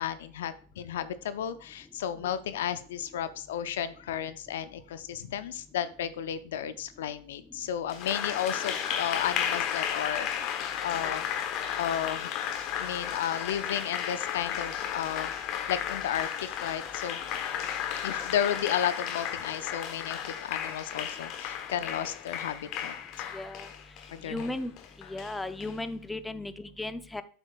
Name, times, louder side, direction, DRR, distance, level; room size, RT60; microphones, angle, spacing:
voice 1, 0.0-11.3 11.8-12.3 12.8-15.3 15.7-17.2 17.8-22.9 24.1-24.5, left 10 dB, 70° left, 13 dB, 0.5 m, -33 dB
Applause, 7.9-25.7, left 9 dB, 45° left, 1.2 m, -34 dB
voice 2, 23.3-23.7 24.2-24.7 25.1-27.2, left 2 dB, 10° left, 12 dB, 0.5 m, -36 dB
7.7 x 6.2 x 2.4 m, 0.42 s
hypercardioid pair, 90°, 0 cm